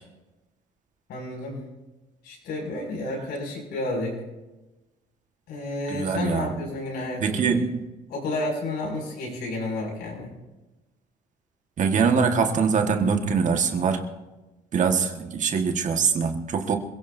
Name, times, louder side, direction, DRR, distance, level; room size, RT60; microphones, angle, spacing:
voice 1, 1.1-1.6 2.2-4.2 5.5-7.6 8.1-10.4, left 2 dB, 75° left, -2 dB, 6.5 m, -31 dB
voice 2, 5.9-6.6 7.2-7.8 11.8-14.1 14.7-16.8, right 5 dB, 45° right, 4 dB, 1.7 m, -23 dB
26.5 x 17.0 x 2.7 m, 1.1 s
cardioid pair, 110°, 17 cm